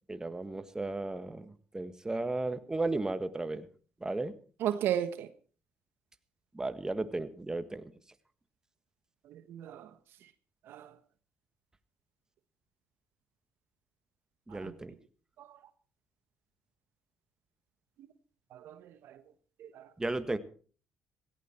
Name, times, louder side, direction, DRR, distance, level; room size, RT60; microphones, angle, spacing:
voice 1, 0.1-3.7 4.0-4.3 6.5-7.9 14.5-14.9 20.0-20.4, right 2 dB, 15° right, 11 dB, 1.6 m, -34 dB
voice 2, 4.6-5.3 9.3-9.9 10.7-10.9 14.5-14.7 15.4-15.5 18.5-19.2 19.6-19.9, right 10 dB, 70° right, 12 dB, 1.3 m, -35 dB
17.0 x 15.5 x 4.4 m, 0.41 s
supercardioid pair, 70°, 4 cm